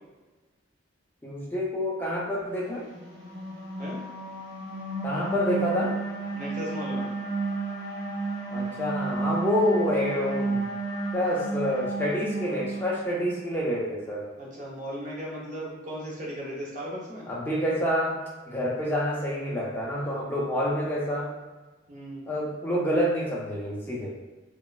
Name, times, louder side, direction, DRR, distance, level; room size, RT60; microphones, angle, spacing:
voice 1, 1.2-2.8 5.0-6.0 8.5-10.7 11.1-14.3 17.3-18.2 18.5-21.3 22.3-24.2, equal, 10° left, -5 dB, 0.5 m, -28 dB
sound 1, 2.8-13.4, right 3 dB, 55° right, 1.0 m, -32 dB
voice 2, 6.3-7.1 14.4-17.3 21.9-22.3, equal, 40° right, -4 dB, 0.7 m, -36 dB
3.0 x 2.2 x 2.3 m, 1.2 s
head